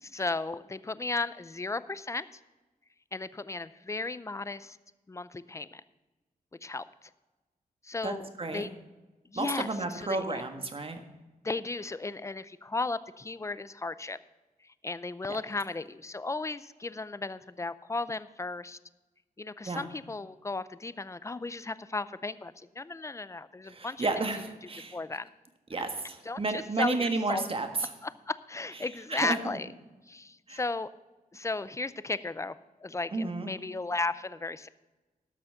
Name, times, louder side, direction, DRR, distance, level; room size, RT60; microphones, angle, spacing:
voice 1, 0.0-2.3 3.1-4.8 5.1-5.8 6.6-6.8 7.8-8.7 9.3-10.4 11.4-14.2 14.8-18.8 19.4-24.1 24.9-25.3 26.3-27.5 28.0-28.1 28.5-29.7 30.1-30.9 31.3-32.5 32.8-34.7, left 3 dB, 20° left, 15 dB, 0.5 m, -35 dB
voice 2, 8.0-8.7 9.4-11.0 15.3-15.4 19.6-19.8 23.6-25.0 25.7-27.9 29.1-29.4 30.5-30.6 33.1-33.5, right 3 dB, 40° right, 6 dB, 1.6 m, -32 dB
12.5 x 6.1 x 6.8 m, 1.1 s
cardioid pair, 75°, 15 cm